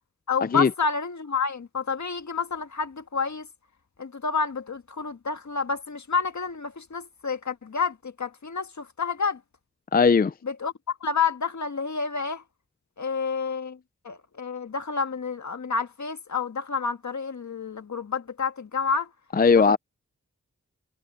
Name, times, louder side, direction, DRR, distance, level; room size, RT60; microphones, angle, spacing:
voice 1, 0.3-3.5 4.0-9.4 10.4-12.4 13.0-13.8 14.0-19.1 19.5-19.8, left 5 dB, 70° left, 1.8 m, -29 dB
voice 2, 9.9-10.3 19.3-19.8, left 5 dB, 30° left, 0.5 m, -18 dB
cardioid pair, 45°, 30 cm